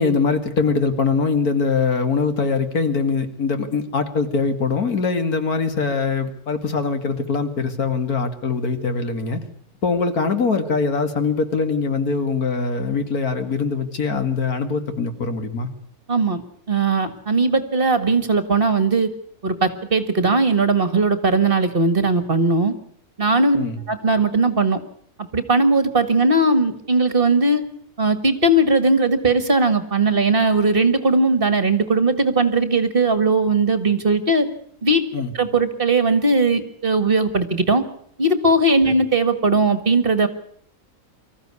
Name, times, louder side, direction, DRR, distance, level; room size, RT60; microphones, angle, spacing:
voice 1, 0.0-9.4 9.8-15.7 23.5-23.8 35.1-35.3 38.9-39.0, left 4 dB, 75° left, 8 dB, 2.6 m, -22 dB
voice 2, 16.1-16.4 16.7-19.1 19.4-22.7 23.2-23.6 23.9-24.8 25.3-27.7 28.0-34.5 34.8-35.1 35.3-37.8 38.2-40.3, right 3 dB, 40° right, 11 dB, 1.9 m, -18 dB
25.0 x 14.5 x 9.7 m, 0.65 s
omnidirectional pair, 1.6 m